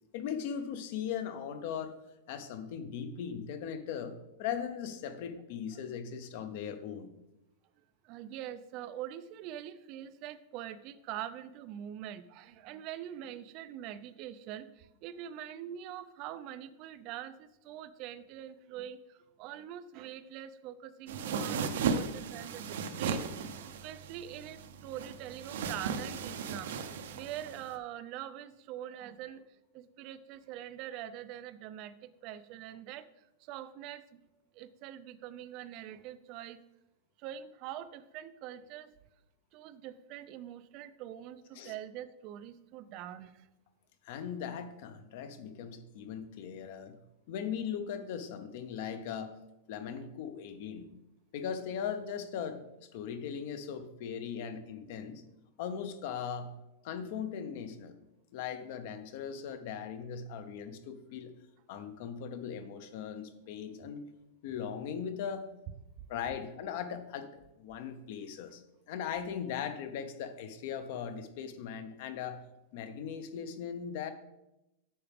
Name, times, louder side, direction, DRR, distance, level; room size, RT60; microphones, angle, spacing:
voice 1, 0.1-1.9 2.3-7.1 41.5-41.7 44.0-47.0 47.3-49.3 49.7-50.9 51.3-52.6 52.9-55.2 55.6-56.5 56.8-58.0 58.3-61.3 61.7-64.0 64.4-65.5 66.1-68.6 68.9-72.4 72.7-74.1, left 7 dB, 45° left, 10 dB, 0.7 m, -39 dB
voice 2, 8.0-26.9 27.1-29.4 29.7-34.2 34.5-36.6 37.2-38.9 39.5-43.5, right 11 dB, 35° right, 13 dB, 0.3 m, -44 dB
sound 1, 21.1-27.7, right 5 dB, 70° right, 0.6 m, -36 dB
8.6 x 5.9 x 3.5 m, 0.91 s
supercardioid pair, 175°, 0 cm